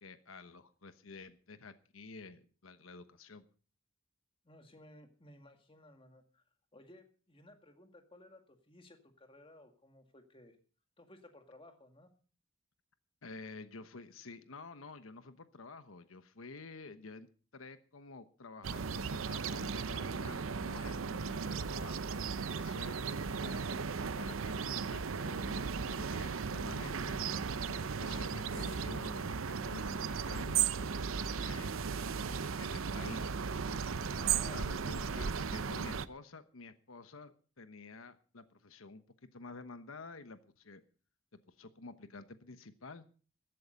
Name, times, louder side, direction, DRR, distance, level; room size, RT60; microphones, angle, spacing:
voice 1, 0.0-3.4 13.2-22.0 22.5-23.0 23.4-23.6 24.1-27.2 27.6-30.6 31.4-33.3 34.3-40.8 41.5-43.0, left 3 dB, 85° left, 11 dB, 1.1 m, -50 dB
voice 2, 4.4-6.4 6.7-10.6 11.0-12.1 34.1-35.2, left 1 dB, 25° left, 6 dB, 2.0 m, -57 dB
sound 1, 18.6-36.1, right 6 dB, 80° right, 0.7 m, -36 dB
14.5 x 12.5 x 5.2 m, 0.39 s
head